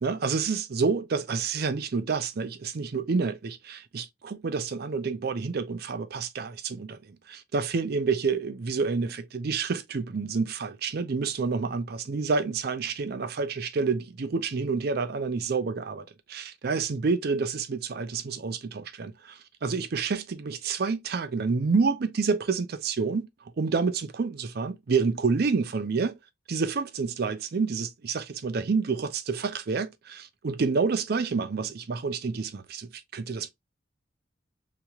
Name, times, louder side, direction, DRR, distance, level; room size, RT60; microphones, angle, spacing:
voice 1, 0.0-23.3 23.6-26.2 26.5-33.5, right 4 dB, 55° right, 0.5 m, -28 dB
2.9 x 2.8 x 2.4 m
head